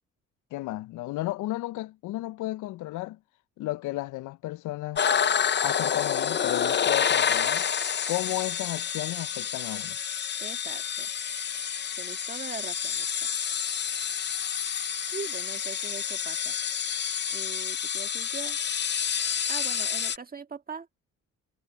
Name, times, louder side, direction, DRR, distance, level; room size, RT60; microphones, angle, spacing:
voice 1, 0.5-3.2 3.6-5.0 5.6-7.7 8.1-10.0, left 18 dB, 80° left, 0.5 m, -33 dB
sound 1, 5.0-20.2, left 8 dB, 35° left, 0.7 m, -28 dB
voice 2, 10.4-11.1 12.0-13.3 15.1-16.6 17.3-18.6 19.5-20.9, right 5 dB, 30° right, 1.8 m, -41 dB
cardioid pair, 90°, 30 cm